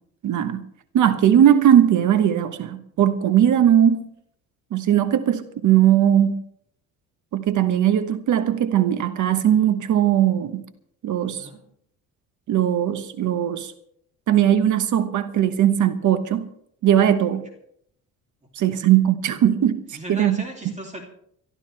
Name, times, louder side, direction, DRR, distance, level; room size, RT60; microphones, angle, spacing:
voice 1, 0.2-0.6 0.9-4.0 4.7-6.4 7.3-10.6 11.0-11.5 12.5-13.7 14.3-16.5 16.8-17.4 18.6-19.8 20.1-20.4, right 10 dB, 60° right, 11 dB, 1.2 m, -19 dB
voice 2, 11.2-11.6 18.6-18.8 19.9-21.0, right 1 dB, 20° right, 2 dB, 2.8 m, -38 dB
25.0 x 12.5 x 3.3 m, 0.69 s
cardioid pair, 105°, 35 cm